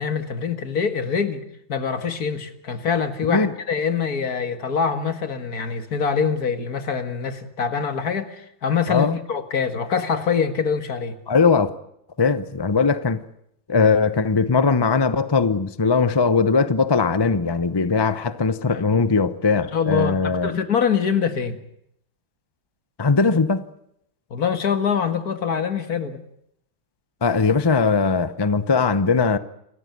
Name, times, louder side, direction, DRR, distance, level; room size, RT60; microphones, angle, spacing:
voice 1, 0.0-1.4 1.7-11.2 18.7-18.8 19.7-21.6 24.3-26.2, left 6 dB, 55° left, 2.2 m, -24 dB
voice 2, 11.3-11.7 12.2-13.2 13.7-20.5 23.0-23.6 27.2-29.4, left 4 dB, 35° left, 0.3 m, -20 dB
28.0 x 14.5 x 9.3 m
omnidirectional pair, 2.1 m